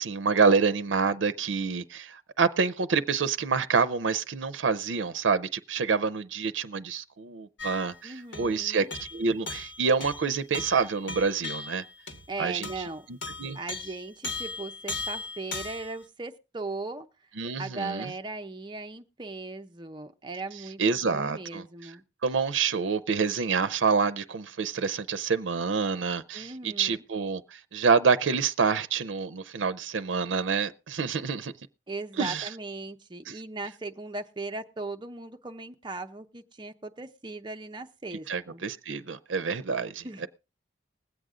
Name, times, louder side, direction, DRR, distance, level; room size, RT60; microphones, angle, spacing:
voice 1, 0.0-8.9 9.1-11.8 12.4-12.8 13.1-13.6 17.4-18.1 20.8-21.9 22.2-31.5 32.2-32.5 33.3-33.4 38.3-40.3, right 5 dB, 85° right, 0.6 m, -27 dB
sound 1, 7.6-8.0 8.3-8.6 8.9-12.3 12.6-13.0 13.2-16.0, left 3 dB, 90° left, 1.8 m, -38 dB
voice 2, 8.0-8.9 12.3-13.1 13.5-17.1 17.6-22.0 26.3-27.0 31.9-38.6 40.0-40.3, right 3 dB, 25° right, 0.7 m, -38 dB
20.5 x 7.9 x 3.7 m
head